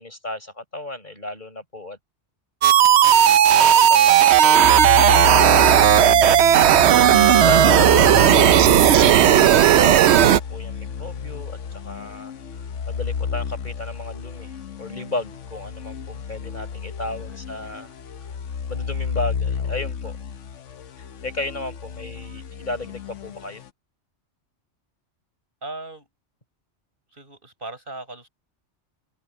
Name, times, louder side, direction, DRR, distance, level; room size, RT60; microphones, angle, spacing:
voice 1, 0.0-2.0 3.5-5.3 7.3-7.8 8.1-12.3 12.9-17.9 18.7-20.1 21.0-23.6, left 2 dB, 40° left, 5.6 m, -34 dB
sound 1, 2.6-10.4, right 10 dB, 70° right, 0.9 m, -14 dB
sound 2, 4.6-23.7, left 6 dB, 85° left, 1.2 m, -30 dB
voice 2, 25.6-26.1 27.1-28.3, right 2 dB, 45° right, 8.0 m, -38 dB
open air
omnidirectional pair, 1.2 m